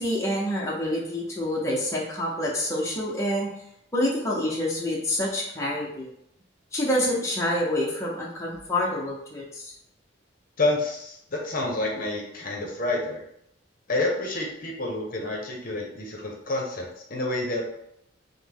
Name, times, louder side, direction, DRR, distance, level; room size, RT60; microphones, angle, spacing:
voice 1, 0.0-3.5 3.9-6.1 6.7-9.7, left 1 dB, 15° left, -5 dB, 0.7 m, -27 dB
voice 2, 10.6-13.2 13.9-17.8, left 2 dB, 50° left, 0 dB, 0.8 m, -29 dB
5.5 x 2.1 x 3.5 m, 0.75 s
head